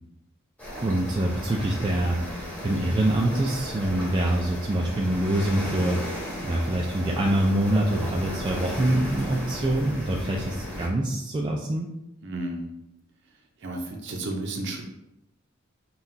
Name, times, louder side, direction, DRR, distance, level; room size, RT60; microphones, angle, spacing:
sound 1, 0.6-10.9, equal, 5° left, 1.0 m, -35 dB
voice 1, 0.8-11.9, right 1 dB, 25° right, -2 dB, 0.3 m, -25 dB
voice 2, 12.2-12.8 13.6-14.8, right 2 dB, 55° right, 2 dB, 0.6 m, -32 dB
5.6 x 2.3 x 2.6 m, 0.86 s
head